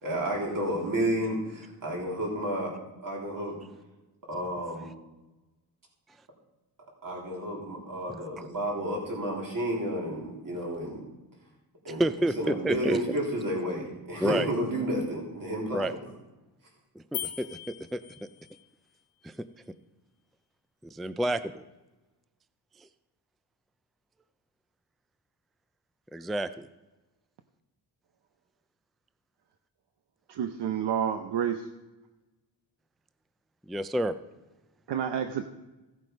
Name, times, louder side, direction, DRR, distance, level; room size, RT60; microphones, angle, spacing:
voice 1, 0.0-2.8 3.0-3.6 4.3-4.9 7.0-11.0 11.8-16.0, right 1 dB, 50° right, -2 dB, 3.6 m, -31 dB
voice 2, 12.0-13.1 14.2-14.5 15.7-15.9 17.0-18.3 19.2-19.4 20.9-21.7 22.8-22.9 26.1-26.7 33.7-34.1, right 1 dB, ahead, 12 dB, 0.3 m, -29 dB
sound 1, 17.1-18.7, left 11 dB, 70° left, 1.0 m, -39 dB
voice 3, 30.3-31.7 34.9-35.5, right 8 dB, 80° right, 7 dB, 0.8 m, -29 dB
15.5 x 7.4 x 5.3 m, 1.1 s
wide cardioid pair, 135°, 41 cm